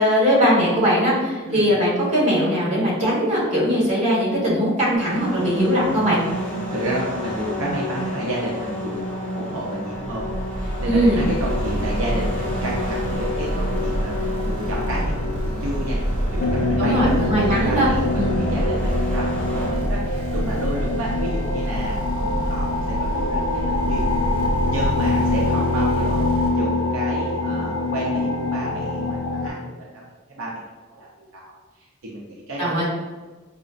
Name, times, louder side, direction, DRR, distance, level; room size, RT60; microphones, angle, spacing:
voice 1, 0.0-6.2 10.9-11.3 16.8-17.9 18.1-18.3 32.6-32.8, equal, 30° right, -7 dB, 1.3 m, -20 dB
sound 1, 4.9-19.7, left 1 dB, 5° left, 1.2 m, -30 dB
voice 2, 6.5-9.1 9.3-16.0 16.2-24.0 24.7-26.3 26.5-30.6 30.9-31.4 31.8-32.8, right 1 dB, 70° right, -4 dB, 0.5 m, -31 dB
sound 2, 10.0-26.5, right 1 dB, 50° right, 0.9 m, -27 dB
sound 3, 16.4-29.5, left 2 dB, 55° left, 0.3 m, -24 dB
4.9 x 2.1 x 2.4 m, 1.3 s
head